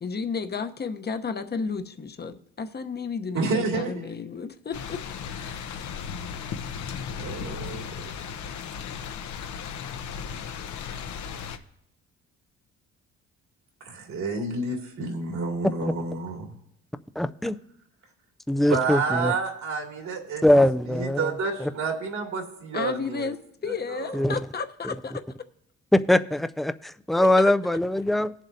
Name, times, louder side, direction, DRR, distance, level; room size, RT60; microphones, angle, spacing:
voice 1, 0.0-5.0 5.4-5.9 22.7-25.2 27.2-27.5, left 5 dB, 35° left, 0.9 m, -33 dB
voice 2, 3.3-4.2 7.2-7.9 13.8-16.5 18.7-20.4 20.9-23.3 23.9-24.1, right 4 dB, 70° right, 2.6 m, -29 dB
sound 1, 4.7-11.6, left 7 dB, 75° left, 0.9 m, -36 dB
voice 3, 17.2-17.6 18.5-19.3 20.4-21.3 21.6-21.7 24.1-24.4 24.8-24.9 25.9-28.3, left 1 dB, ahead, 0.3 m, -22 dB
18.5 x 7.4 x 2.7 m
cardioid pair, 90°, 30 cm